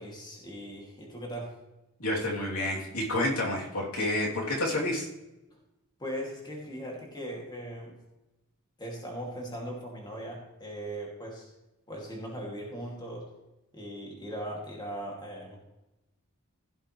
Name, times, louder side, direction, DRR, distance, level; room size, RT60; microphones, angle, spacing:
voice 1, 0.0-1.5 6.0-8.0 8.8-11.5 11.9-13.3 13.7-15.6, equal, 20° left, -2 dB, 2.6 m, -39 dB
voice 2, 2.0-5.1, left 1 dB, 80° left, -3 dB, 3.2 m, -29 dB
16.0 x 7.9 x 3.3 m, 0.96 s
head